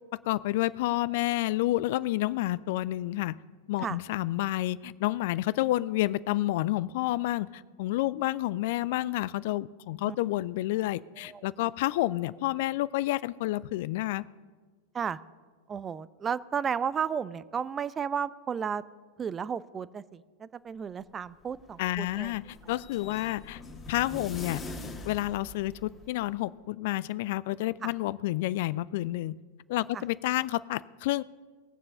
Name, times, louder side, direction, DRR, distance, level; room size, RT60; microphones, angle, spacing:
voice 1, 0.1-3.4 3.7-14.2 21.8-23.6 23.9-24.6 25.0-29.3 29.7-31.2, left 16 dB, 50° left, 20 dB, 0.3 m, -29 dB
voice 2, 15.7-18.8 19.2-22.3 27.8-27.9 29.9-30.0, right 7 dB, 20° right, 18 dB, 0.4 m, -33 dB
sound 1, 21.2-26.3, left 2 dB, 20° left, 1.5 m, -43 dB
19.5 x 7.5 x 6.7 m, 1.5 s
figure-of-eight pair, 90°, 0 cm